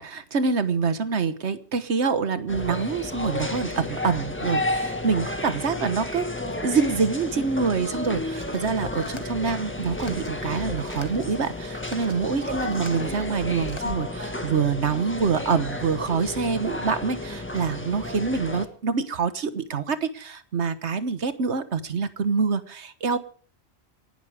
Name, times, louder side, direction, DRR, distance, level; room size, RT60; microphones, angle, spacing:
voice 1, 0.0-6.3 6.6-23.2, right 5 dB, 85° right, 12 dB, 1.6 m, -26 dB
sound 1, 2.5-18.7, left 2 dB, 10° left, 1.7 m, -32 dB
sound 2, 8.3-13.9, left 2 dB, 25° left, 1.6 m, -42 dB
28.0 x 11.5 x 3.5 m, 0.42 s
omnidirectional pair, 1.1 m